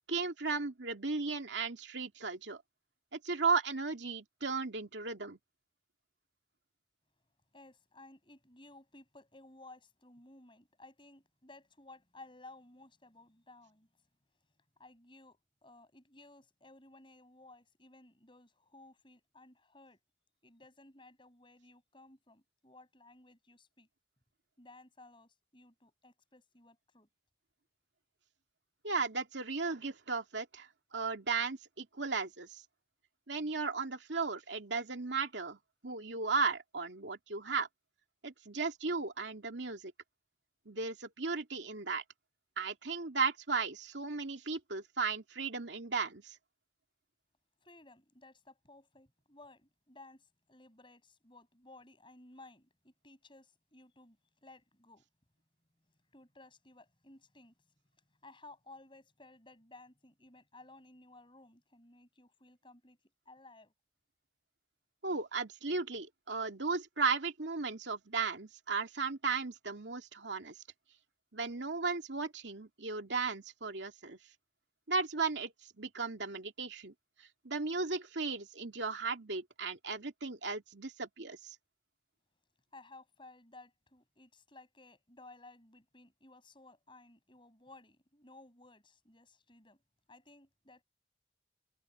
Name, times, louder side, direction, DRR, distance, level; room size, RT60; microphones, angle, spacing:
voice 1, 0.1-2.6 3.1-5.4 28.8-32.6 33.3-35.6 35.8-37.7 38.2-39.8 40.7-42.0 42.6-46.4 65.0-70.6 71.3-74.2 74.9-76.9 77.4-81.6, right 4 dB, 80° right, 2.4 m, -35 dB
voice 2, 7.5-13.9 14.8-20.0 20.4-23.9 24.6-27.1 47.6-55.1 56.1-57.5 58.2-63.0 63.3-63.7 82.7-89.8 90.1-90.8, left 2 dB, 25° left, 8.0 m, -57 dB
head